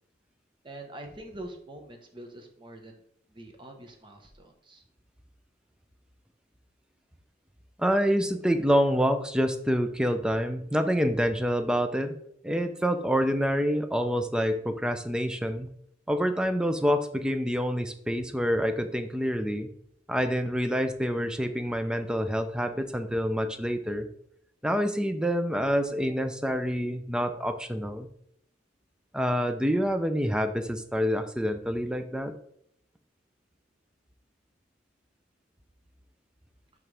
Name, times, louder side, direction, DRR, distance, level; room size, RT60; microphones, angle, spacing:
voice 1, 0.6-3.0 3.3-4.8, right 1 dB, 25° right, 3 dB, 1.1 m, -44 dB
voice 2, 7.8-12.2 12.4-15.7 16.1-19.7 20.1-24.1 24.6-28.1 29.1-32.3, equal, 5° right, 8 dB, 0.5 m, -27 dB
10.5 x 3.7 x 3.4 m, 0.70 s
head